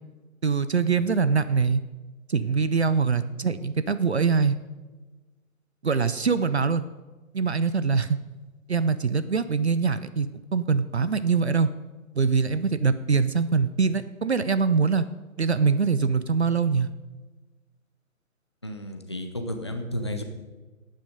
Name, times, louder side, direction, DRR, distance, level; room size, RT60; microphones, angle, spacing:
voice 1, 0.4-1.8 2.3-4.5 5.8-6.8 7.3-8.2 8.7-11.7 12.1-15.0 15.4-16.9, right 5 dB, 50° right, 14 dB, 0.6 m, -23 dB
voice 2, 18.6-20.2, left 1 dB, 20° left, 5 dB, 0.6 m, -32 dB
12.0 x 9.1 x 5.2 m, 1.2 s
figure-of-eight pair, 150°, 41 cm